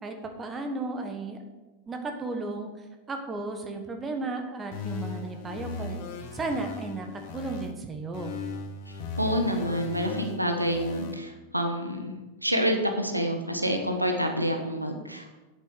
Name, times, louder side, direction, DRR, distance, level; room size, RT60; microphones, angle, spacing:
voice 1, 0.0-1.4 1.9-2.7 3.1-6.0 6.3-8.4, right 3 dB, 20° right, 4 dB, 1.5 m, -34 dB
sound 1, 4.7-7.7 8.1-11.1, left 4 dB, 50° left, 1.4 m, -37 dB
voice 2, 9.2-12.1 12.4-15.4, equal, 90° right, 4 dB, 1.2 m, -28 dB
8.4 x 8.1 x 6.4 m, 1.1 s
figure-of-eight pair, 90°, 0 cm